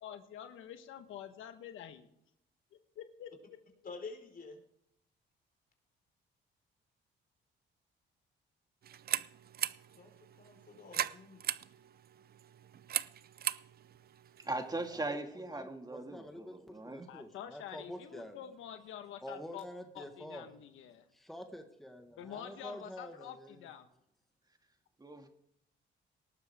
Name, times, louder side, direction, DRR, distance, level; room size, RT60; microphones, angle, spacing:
voice 1, 0.0-2.1 2.7-3.6 17.1-19.7 19.9-21.0 22.2-23.8, left 10 dB, 85° left, 1.3 m, -47 dB
voice 2, 3.8-4.6 9.7-10.1 10.4-11.5, left 4 dB, 45° left, 4.7 m, -48 dB
sound 1, 8.8-15.1, right 10 dB, 50° right, 0.6 m, -40 dB
voice 3, 14.4-17.1 25.0-25.3, right 2 dB, 20° right, 2.2 m, -39 dB
voice 4, 15.3-18.5 19.2-20.5 21.1-23.7, equal, ahead, 1.6 m, -48 dB
19.0 x 12.5 x 3.6 m
cardioid pair, 90°, 20 cm